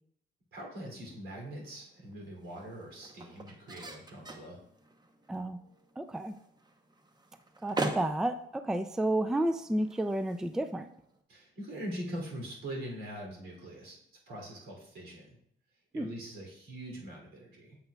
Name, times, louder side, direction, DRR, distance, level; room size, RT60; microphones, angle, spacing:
voice 1, 0.5-4.6 11.3-14.0 14.3-15.4 15.9-17.8, right 1 dB, 80° right, 0 dB, 2.9 m, -42 dB
sound 1, 0.8-11.2, right 2 dB, 20° right, 0.8 m, -43 dB
voice 2, 5.3-5.6 6.0-6.4 7.6-10.9 15.9-16.1, right 1 dB, 5° right, 9 dB, 0.3 m, -31 dB
7.8 x 7.6 x 2.3 m, 0.72 s
cardioid pair, 90°, 20 cm